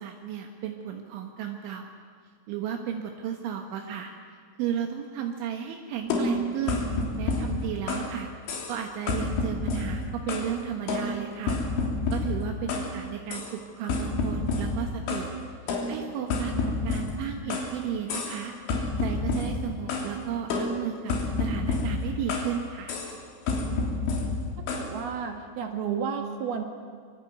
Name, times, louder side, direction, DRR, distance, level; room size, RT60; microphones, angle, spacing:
voice 1, 0.0-1.9 2.5-4.1 4.6-6.8 7.2-8.3 8.7-11.6 12.1-15.3 15.9-18.5 19.0-23.0, right 9 dB, 80° right, 3 dB, 3.8 m, -34 dB
sound 1, 6.1-8.2 8.5-8.8 9.1-10.6 10.9-12.9 13.3-13.5 13.9-15.3 15.7-17.7 18.1-18.4 18.7-20.1 20.5-22.6 22.9-23.2 23.5-24.9, left 3 dB, 75° left, 5.6 m, -29 dB
voice 2, 24.6-26.6, right 7 dB, 60° right, 5 dB, 3.2 m, -32 dB
25.0 x 24.0 x 9.3 m, 2.1 s
omnidirectional pair, 5.6 m